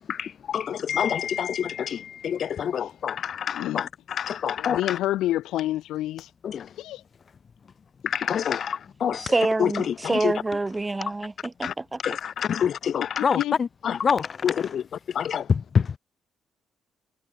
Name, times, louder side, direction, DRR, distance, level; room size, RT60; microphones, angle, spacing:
voice 1, 0.1-5.0 6.4-6.6 8.0-9.2 9.6-9.9 10.2-10.3 11.6-11.7 12.0-13.2 13.8-14.0 14.4-14.8 15.1-15.4, left 8 dB, 60° left, 1.5 m, -28 dB
voice 2, 3.5-3.8 4.6-6.3 6.8-7.0 13.2-13.6, left 14 dB, 85° left, 6.1 m, -28 dB
voice 3, 9.2-12.2, right 2 dB, 20° right, 4.5 m, -27 dB
voice 4, 13.2-13.7 14.0-14.7 15.5-16.0, left 6 dB, 45° left, 4.5 m, -24 dB
cardioid pair, 90°, 0 cm